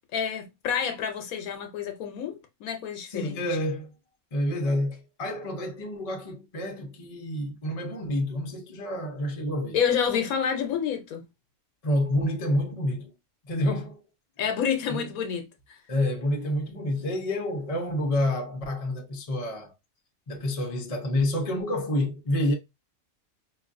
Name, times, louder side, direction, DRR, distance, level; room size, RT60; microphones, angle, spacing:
voice 1, 0.1-3.4 9.7-11.2 14.4-15.8, left 7 dB, 85° left, 1.1 m, -28 dB
voice 2, 3.1-3.9 4.3-9.8 11.8-13.1 13.4-14.0 14.9-15.0 15.9-19.7 20.3-22.5, left 1 dB, 35° left, 0.7 m, -28 dB
4.5 x 2.5 x 2.5 m
omnidirectional pair, 1.4 m